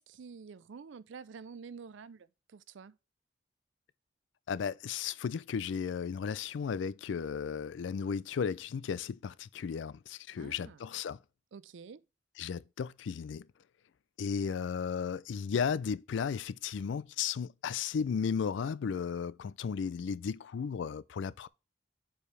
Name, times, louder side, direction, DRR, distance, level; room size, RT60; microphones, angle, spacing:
voice 1, 0.0-3.0 10.4-10.8 11.5-12.0, right 5 dB, 80° right, 0.4 m, -49 dB
voice 2, 4.5-11.2 12.4-13.5 14.2-21.5, left 6 dB, 75° left, 0.3 m, -34 dB
7.4 x 4.8 x 3.2 m
head